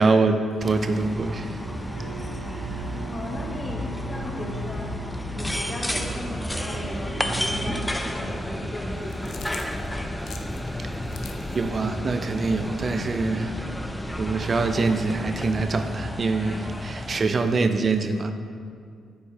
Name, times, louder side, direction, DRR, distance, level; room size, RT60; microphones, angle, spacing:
voice 1, 0.0-1.6 2.7-2.8 10.8-10.9 11.5-13.6 14.2-18.3, right 3 dB, 45° right, 8 dB, 0.6 m, -24 dB
sound 1, 0.6-17.2, equal, 10° left, 0.6 m, -32 dB
sound 2, 1.6-7.9, right 2 dB, 80° right, 0.9 m, -36 dB
voice 2, 3.1-3.8 4.1-4.9 5.3-9.7 10.0-10.1, left 1 dB, 30° left, -1 dB, 1.4 m, -37 dB
sound 3, 8.9-11.8, left 4 dB, 65° left, 0.6 m, -41 dB
11.5 x 4.5 x 3.4 m, 2.2 s
hypercardioid pair, 50°, 0 cm